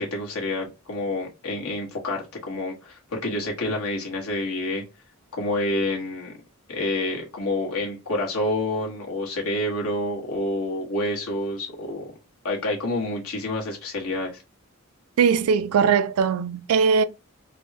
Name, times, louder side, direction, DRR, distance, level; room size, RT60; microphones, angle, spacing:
voice 1, 0.0-4.8 5.3-6.3 6.7-12.0 12.4-14.4, left 1 dB, 85° left, 1.1 m, -28 dB
voice 2, 15.2-17.0, right 6 dB, 85° right, 0.3 m, -20 dB
3.4 x 2.0 x 2.7 m
head